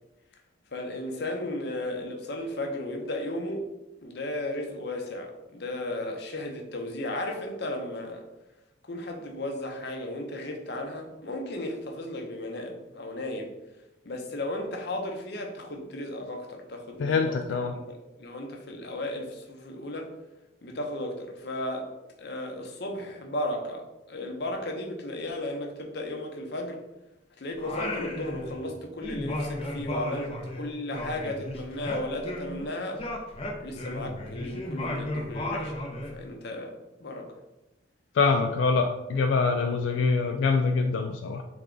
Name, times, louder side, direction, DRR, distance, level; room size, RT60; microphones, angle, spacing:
voice 1, 0.7-3.7 4.0-8.2 8.9-13.5 14.0-17.4 17.7-20.1 20.6-21.9 22.2-23.8 24.1-26.8 27.4-33.0 33.6-35.8 36.1-36.7 37.0-37.3, left 1 dB, 65° left, 2 dB, 0.7 m, -34 dB
voice 2, 17.0-17.7 38.1-41.4, left 4 dB, 90° left, 5 dB, 0.3 m, -24 dB
Singing, 27.6-28.7 29.0-32.6 32.9-36.2, left 1 dB, 35° left, 0.6 m, -34 dB
3.5 x 3.4 x 3.7 m, 0.98 s
head